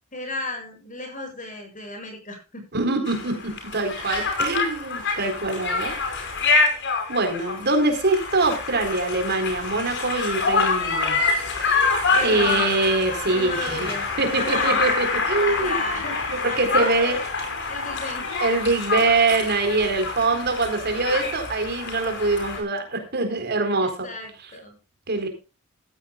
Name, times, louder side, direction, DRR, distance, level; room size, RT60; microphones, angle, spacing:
voice 1, 0.1-2.6 12.1-12.8 13.3-14.8 15.5-16.2 16.5-17.3 17.7-18.3 20.3-20.4 23.8-24.8, left 2 dB, 35° left, 4 dB, 8.0 m, -34 dB
voice 2, 2.7-5.9 7.1-11.2 11.6-11.8 12.2-15.8 16.3-17.2 18.4-24.1 25.1-25.3, right 3 dB, 50° right, 5 dB, 4.3 m, -24 dB
Conversation, 3.1-22.6, left 4 dB, 55° left, 5.6 m, -26 dB
15.5 x 15.5 x 2.4 m, 0.31 s
head